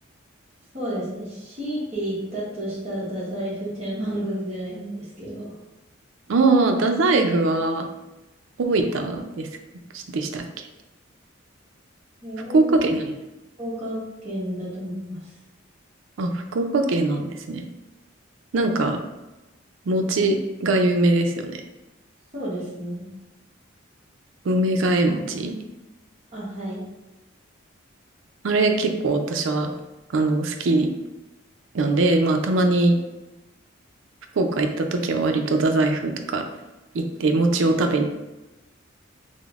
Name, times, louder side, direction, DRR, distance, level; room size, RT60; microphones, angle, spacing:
voice 1, 0.7-5.5 12.2-12.8 13.6-15.2 22.3-23.1 26.3-26.8, equal, 30° right, -8 dB, 0.9 m, -31 dB
voice 2, 6.3-7.9 8.6-9.5 9.9-10.4 12.5-13.1 16.2-17.6 18.5-19.0 19.9-21.6 24.5-25.5 28.4-29.7 30.1-30.9 31.7-33.0 34.4-36.4 36.9-38.0, right 2 dB, 75° right, 5 dB, 0.4 m, -21 dB
5.0 x 2.0 x 2.4 m, 1.0 s
head